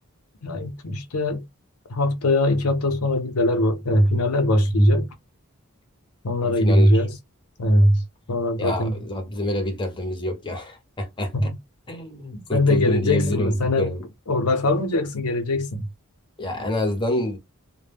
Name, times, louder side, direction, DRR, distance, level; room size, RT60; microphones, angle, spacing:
voice 1, 0.4-1.4 1.9-5.1 6.2-7.1 7.6-8.0 8.3-9.0 11.3-11.5 12.5-13.9 14.3-15.8, left 1 dB, 85° left, 0.7 m, -21 dB
voice 2, 6.4-7.0 8.6-11.5 11.9-14.1 16.4-17.4, left 1 dB, 20° left, 0.7 m, -27 dB
2.2 x 2.1 x 3.3 m
head